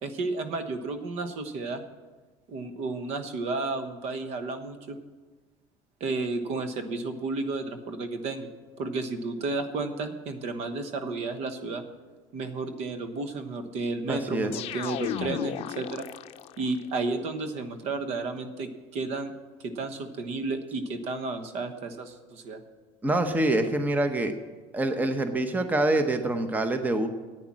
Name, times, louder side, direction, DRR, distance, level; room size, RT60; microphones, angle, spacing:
voice 1, 0.0-1.8 2.5-5.0 6.0-8.5 8.8-11.8 12.3-16.0 16.6-19.3 19.6-22.6, right 3 dB, 60° right, 8 dB, 1.2 m, -32 dB
voice 2, 14.1-14.5 23.0-24.3 24.7-27.1, right 2 dB, 15° right, 8 dB, 0.9 m, -25 dB
sound 1, 14.5-16.8, left 11 dB, 55° left, 0.5 m, -34 dB
10.0 x 9.1 x 7.4 m, 1.3 s
cardioid pair, 125°, 12 cm